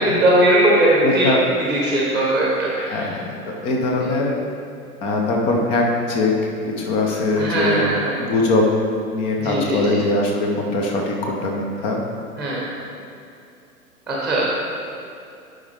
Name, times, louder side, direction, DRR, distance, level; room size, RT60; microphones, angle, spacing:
voice 1, 0.0-1.3 1.7-3.1 7.4-8.2 9.4-10.0 12.4-12.7 14.1-14.4, right 1 dB, ahead, -5 dB, 1.0 m, -19 dB
voice 2, 1.0-1.4 2.8-4.3 5.0-7.9 8.2-8.6 9.1-12.0, left 2 dB, 15° left, 0 dB, 0.5 m, -21 dB
10.5 x 5.1 x 3.4 m, 2.6 s
figure-of-eight pair, 110°, 46 cm